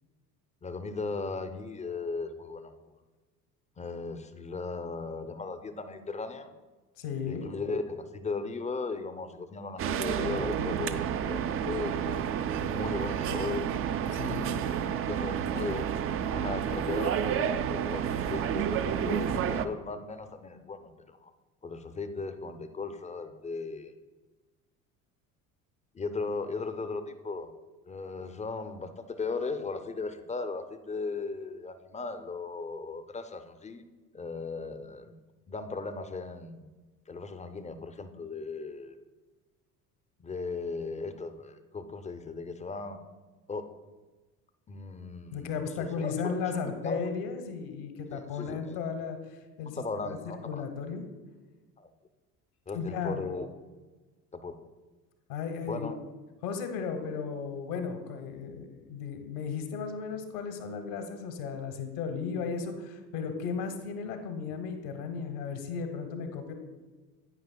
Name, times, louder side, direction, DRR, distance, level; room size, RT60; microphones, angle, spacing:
voice 1, 0.6-2.9 3.8-6.5 7.3-12.2 12.6-13.6 14.2-15.8 16.1-21.3 21.6-23.9 25.9-27.5 27.9-33.8 34.1-35.2 35.5-36.7 37.1-39.0 40.2-43.0 43.5-43.6 44.7-47.1 48.1-48.8 49.6-50.6 51.8-51.9 52.7-53.5 54.3-54.6 55.7-56.0, left 4 dB, 15° left, 9 dB, 0.6 m, -37 dB
voice 2, 7.0-7.5 14.1-14.5 45.3-50.2 50.4-51.0 52.7-53.2 55.3-55.9 56.4-66.5, left 6 dB, 70° left, 7 dB, 1.3 m, -35 dB
sound 1, 9.8-19.7, right 9 dB, 30° right, 0.4 m, -30 dB
9.8 x 9.3 x 2.2 m, 1.3 s
figure-of-eight pair, 60°, 47 cm